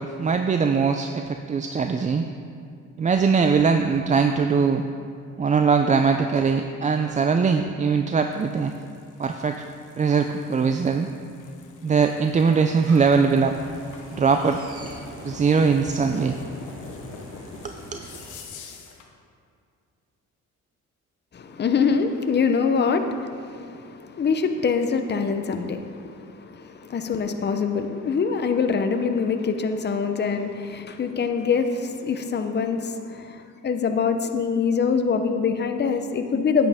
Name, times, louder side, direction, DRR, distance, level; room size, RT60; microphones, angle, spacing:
voice 1, 0.0-2.3 3.0-4.8 5.4-8.7 9.2-9.6 10.0-11.1 11.8-13.6 14.1-14.6 15.2-16.4 17.6-18.0, right 5 dB, 25° right, 6 dB, 0.4 m, -21 dB
sound 1, 8.1-19.1, left 5 dB, 85° left, 1.0 m, -45 dB
sound 2, 12.9-18.4, right 1 dB, 50° right, 1.9 m, -43 dB
voice 2, 21.3-36.7, left 5 dB, 35° left, 7 dB, 0.7 m, -24 dB
10.5 x 8.8 x 3.5 m, 2.3 s
cardioid pair, 90°, 30 cm